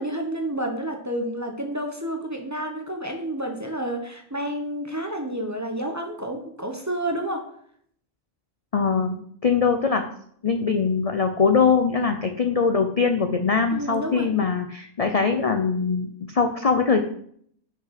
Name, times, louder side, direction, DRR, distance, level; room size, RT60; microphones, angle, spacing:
voice 1, 0.0-7.5 13.7-14.3, right 1 dB, 15° right, 3 dB, 0.9 m, -30 dB
voice 2, 8.7-10.0 10.4-17.0, left 5 dB, 45° left, 6 dB, 0.5 m, -22 dB
5.9 x 5.9 x 5.9 m, 0.64 s
omnidirectional pair, 1.4 m